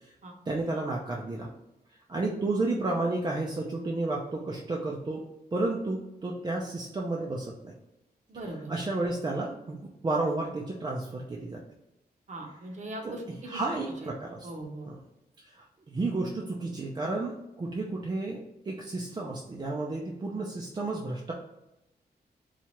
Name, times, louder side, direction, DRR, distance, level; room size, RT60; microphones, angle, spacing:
voice 1, 0.5-1.5 2.1-5.2 5.5-7.7 8.7-11.6 13.0-13.2 13.5-14.5 14.9-15.0 15.6-21.3, right 2 dB, 25° right, -2 dB, 0.4 m, -32 dB
voice 2, 8.3-8.7 12.3-13.6 14.0-14.1 14.4-14.9, right 1 dB, 45° right, 2 dB, 0.8 m, -40 dB
4.3 x 2.4 x 2.9 m, 0.91 s
wide cardioid pair, 160°, 17 cm